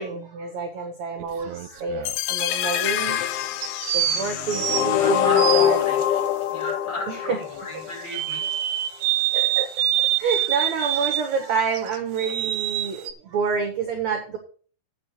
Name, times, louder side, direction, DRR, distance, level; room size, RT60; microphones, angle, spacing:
voice 1, 0.0-3.4 3.9-5.8 6.1-6.6 7.1-7.4 9.3-9.7 10.0-14.4, right 5 dB, 60° right, 3 dB, 1.9 m, -28 dB
sound 1, 1.2-2.2 3.6-6.1 8.1-11.4 11.7-13.1, right 14 dB, 80° right, 2.8 m, -26 dB
sound 2, 2.0-8.1, left 11 dB, 85° left, 2.1 m, -24 dB
voice 2, 4.0-6.0 6.5-8.5, left 1 dB, 30° left, -4 dB, 5.2 m, -35 dB
8.9 x 6.7 x 6.7 m, 0.42 s
omnidirectional pair, 5.2 m